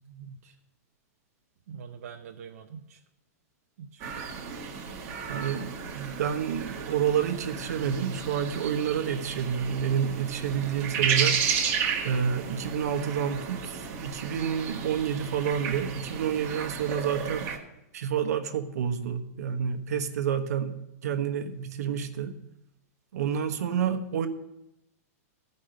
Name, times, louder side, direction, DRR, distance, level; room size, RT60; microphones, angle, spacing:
voice 1, 0.1-0.5 1.7-3.0 3.8-4.5 17.3-17.5, right 6 dB, 65° right, 2 dB, 0.7 m, -44 dB
sound 1, 4.0-17.6, right 6 dB, 30° right, 1.2 m, -33 dB
voice 2, 5.3-5.7 5.9-11.4 12.0-17.5 17.9-22.4 23.1-24.3, right 8 dB, 80° right, 6 dB, 1.1 m, -29 dB
13.0 x 5.4 x 6.3 m, 0.88 s
supercardioid pair, 165°, 9 cm